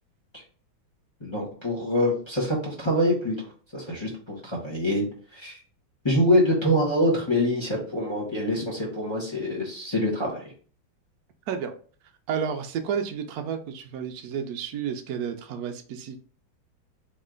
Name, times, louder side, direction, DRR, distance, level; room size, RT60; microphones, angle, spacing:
voice 1, 1.2-3.4 3.7-5.0 5.3-5.6 6.0-10.4, equal, 20° left, -4 dB, 0.9 m, -25 dB
voice 2, 12.3-16.2, right 7 dB, 80° right, 5 dB, 0.8 m, -31 dB
3.6 x 3.2 x 3.7 m, 0.42 s
omnidirectional pair, 2.2 m